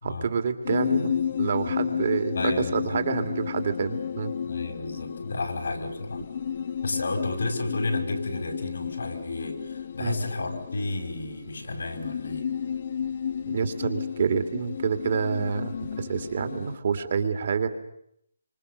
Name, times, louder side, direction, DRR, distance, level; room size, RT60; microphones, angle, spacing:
voice 1, 0.0-1.1 1.4-4.3 10.0-10.2 13.5-17.7, right 6 dB, 55° right, 8 dB, 2.7 m, -28 dB
sound 1, 0.6-16.8, left 7 dB, 50° left, 1.3 m, -32 dB
voice 2, 2.3-3.0 4.5-6.2 6.8-12.5, left 2 dB, 75° left, 5 dB, 5.6 m, -32 dB
26.5 x 25.5 x 6.8 m, 0.74 s
figure-of-eight pair, 150°, 0 cm